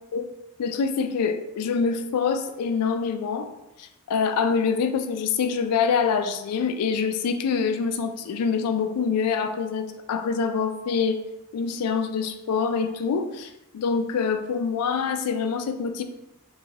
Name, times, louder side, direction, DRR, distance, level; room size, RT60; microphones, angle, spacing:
voice 1, 0.6-3.5 3.8-11.2 11.5-16.0, left 5 dB, 85° left, 8 dB, 0.3 m, -25 dB
2.8 x 2.3 x 2.8 m, 0.93 s
head